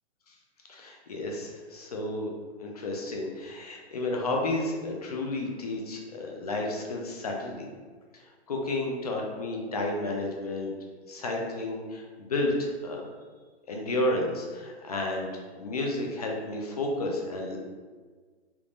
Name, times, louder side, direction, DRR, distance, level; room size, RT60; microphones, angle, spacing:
voice 1, 0.7-2.3 2.6-7.7 8.1-8.2 8.5-10.7 11.1-13.1 13.7-15.3 15.6-17.6, left 2 dB, 35° left, 0 dB, 0.4 m, -31 dB
3.5 x 2.9 x 2.5 m, 1.5 s
hypercardioid pair, 165°, 35 cm